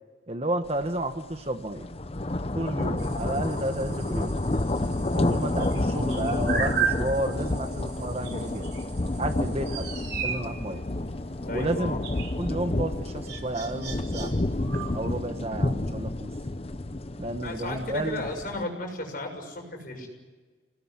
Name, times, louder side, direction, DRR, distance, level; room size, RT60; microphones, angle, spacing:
voice 1, 0.3-1.9 2.5-4.3 5.1-8.6 9.2-9.9 10.2-10.8 11.5-12.0 12.4-14.3 14.9-16.3 17.2-18.2, right 1 dB, 30° right, 8 dB, 1.2 m, -31 dB
sound 1, 0.8-1.0 1.4-18.6, left 2 dB, 30° left, 0.8 m, -30 dB
sound 2, 3.0-15.2, right 7 dB, 55° right, 4.0 m, -37 dB
voice 2, 11.5-12.0 17.4-20.1, left 1 dB, 45° left, 2 dB, 6.8 m, -34 dB
26.0 x 19.0 x 9.9 m, 1.4 s
head